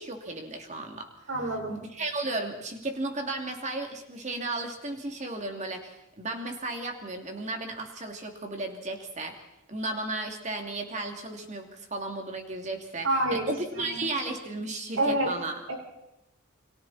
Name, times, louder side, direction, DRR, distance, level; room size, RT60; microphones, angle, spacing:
voice 1, 0.0-1.1 1.7-9.4 9.7-15.6, right 2 dB, 35° right, 3 dB, 2.9 m, -34 dB
voice 2, 1.3-1.8 13.0-14.1 15.0-15.3 15.7-15.8, right 1 dB, 75° right, 2 dB, 5.5 m, -28 dB
29.5 x 23.0 x 4.4 m, 0.87 s
head